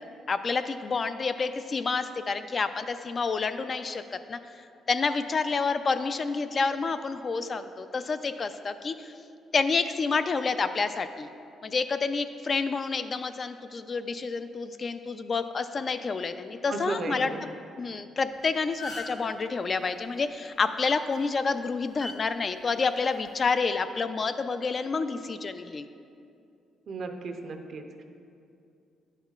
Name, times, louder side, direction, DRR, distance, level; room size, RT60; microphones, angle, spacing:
voice 1, 0.3-4.4 4.9-9.1 9.5-11.3 11.6-17.3 17.8-25.9, left 4 dB, 40° left, 9 dB, 0.3 m, -29 dB
voice 2, 16.7-17.4 26.9-28.0, right 3 dB, 60° right, 5 dB, 0.6 m, -35 dB
sound 1, 18.2-18.4 18.6-19.3 20.9-21.1 22.0-22.2 23.2-23.5, left 2 dB, 65° left, 1.4 m, -38 dB
10.5 x 5.5 x 2.4 m, 2.5 s
cardioid pair, 90°, 0 cm